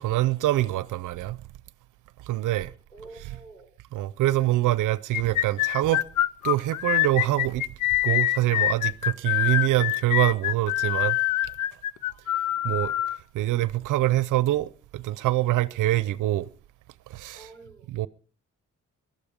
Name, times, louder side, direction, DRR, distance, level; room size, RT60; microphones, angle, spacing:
voice 1, 0.0-1.4 2.2-2.7 3.9-6.1 6.4-7.7 8.0-11.2 12.6-16.5 17.1-17.5 17.9-18.1, right 15 dB, 85° right, 0.6 m, -25 dB
voice 2, 2.9-3.7 12.0-12.7 17.3-17.9, right 3 dB, 10° left, 5.6 m, -49 dB
sound 1, 5.1-13.2, left 14 dB, 80° left, 0.6 m, -25 dB
15.0 x 12.5 x 5.1 m
cardioid pair, 70°, 30 cm